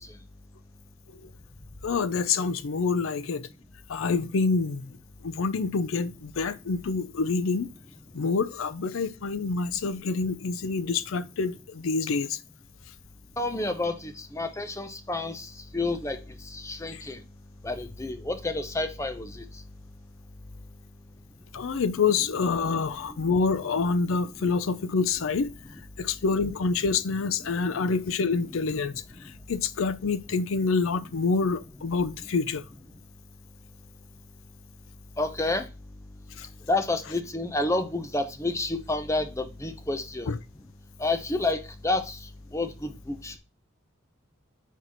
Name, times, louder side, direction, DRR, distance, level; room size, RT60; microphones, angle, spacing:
voice 1, 1.8-3.5 3.9-4.9 5.2-7.7 8.1-12.4 16.9-17.0 21.5-25.5 26.0-29.0 29.5-32.6 36.4-36.5 40.3-40.4, left 4 dB, 75° left, 0.5 m, -27 dB
voice 2, 13.4-16.2 16.4-17.2 17.6-19.4 22.8-22.9 24.4-24.5 27.8-27.9 35.2-35.7 36.7-40.3 41.0-42.2 42.5-43.4, left 2 dB, 15° left, 0.6 m, -29 dB
4.6 x 4.0 x 5.7 m
head